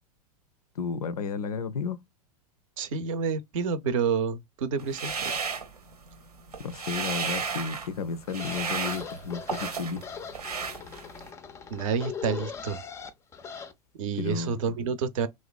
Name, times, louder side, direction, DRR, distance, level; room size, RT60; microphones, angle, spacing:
voice 1, 0.8-2.0 6.6-10.0 14.2-14.6, left 5 dB, 80° left, 0.4 m, -32 dB
voice 2, 2.8-5.4 11.7-12.8 14.0-15.3, right 6 dB, 60° right, 0.6 m, -29 dB
sound 1, 4.8-6.2 6.5-7.9 8.3-10.0 10.3-11.3, right 5 dB, 85° right, 0.8 m, -33 dB
sound 2, 8.3-13.7, left 6 dB, 15° left, 0.3 m, -40 dB
3.1 x 2.3 x 2.3 m
hypercardioid pair, 95°, 19 cm